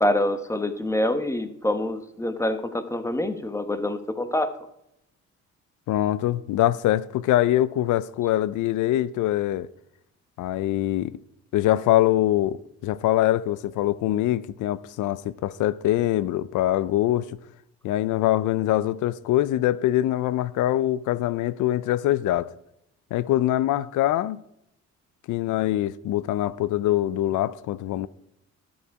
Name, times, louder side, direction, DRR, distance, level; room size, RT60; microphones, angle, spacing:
voice 1, 0.0-4.5, left 1 dB, 10° left, 1.1 m, -26 dB
voice 2, 5.9-9.7 10.4-11.2 11.5-17.3 17.8-22.5 23.1-24.4 25.3-28.1, left 14 dB, 80° left, 0.5 m, -23 dB
12.5 x 7.1 x 4.8 m
cardioid pair, 90°, 30 cm